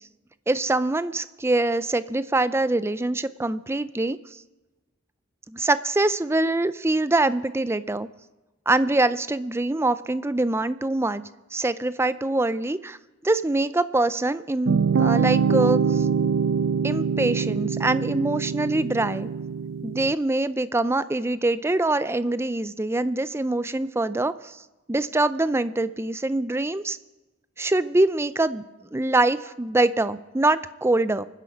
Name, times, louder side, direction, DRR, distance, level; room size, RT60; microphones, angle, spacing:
voice 1, 0.5-4.2 5.5-8.1 8.7-11.2 11.5-13.0 13.2-16.1 16.8-19.3 19.8-24.6 24.9-27.0 27.6-28.6 28.9-31.2, right 2 dB, 15° right, 14 dB, 0.4 m, -24 dB
sound 1, 14.7-20.1, right 6 dB, 70° right, 0.4 m, -24 dB
24.5 x 10.0 x 5.1 m, 1.1 s
head